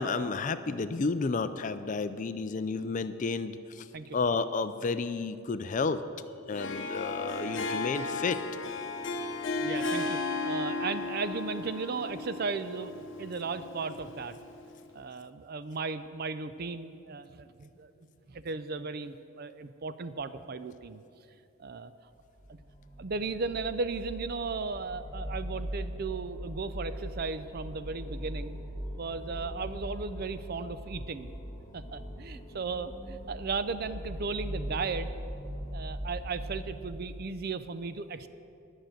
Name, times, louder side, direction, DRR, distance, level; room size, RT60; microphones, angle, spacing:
voice 1, 0.0-3.9 4.1-6.0 6.5-8.4, left 4 dB, 35° left, 12 dB, 0.4 m, -31 dB
Harp, 6.5-14.8, left 3 dB, 60° left, 0.8 m, -35 dB
voice 2, 9.6-14.4 14.9-17.9 18.3-21.0 21.6-21.9 22.5-22.6 23.0-28.6 29.0-31.3 31.7-35.1 35.7-38.3, right 4 dB, 45° right, 12 dB, 0.4 m, -36 dB
sound 1, 22.2-37.0, equal, 15° left, 1.1 m, -40 dB
11.5 x 6.5 x 8.8 m, 2.6 s
head